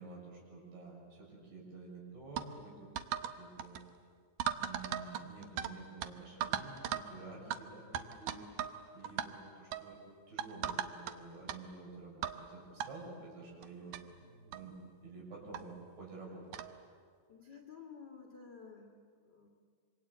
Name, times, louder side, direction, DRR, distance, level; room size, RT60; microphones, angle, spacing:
voice 1, 0.0-3.8 4.6-8.5 8.9-10.0 10.3-14.8 15.0-16.4, right 3 dB, 60° right, -2 dB, 8.5 m, -50 dB
sound 1, 2.4-2.5 3.0-3.3 3.6-3.8 4.4-5.7 6.0-6.1 6.4-7.1 7.5-7.6 7.9-8.8 9.0-9.3 9.7-9.9 10.4-11.1 11.5-11.6 12.2-12.4 12.8-12.9 13.6-13.7 13.9-14.0 14.5-14.7 15.5-15.6 16.5-16.7, right 10 dB, 90° right, 1.8 m, -37 dB
voice 2, 17.3-19.5, left 6 dB, 40° left, 0 dB, 1.7 m, -53 dB
26.5 x 25.0 x 8.2 m, 2.1 s
omnidirectional pair, 5.1 m